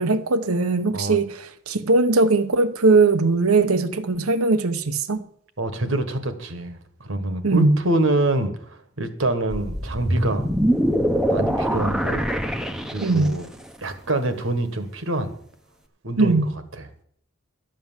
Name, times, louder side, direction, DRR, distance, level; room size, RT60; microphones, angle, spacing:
voice 1, 0.0-1.4 1.7-5.2 7.4-7.8 13.0-13.4 16.2-16.5, right 3 dB, 90° right, 0.9 m, -19 dB
voice 2, 5.6-10.5 11.3-12.3 12.9-13.5 13.8-15.3 16.0-16.8, right 2 dB, 70° right, 1.4 m, -26 dB
sound 1, 9.5-13.5, equal, 5° right, 0.7 m, -23 dB
12.0 x 7.7 x 7.4 m
head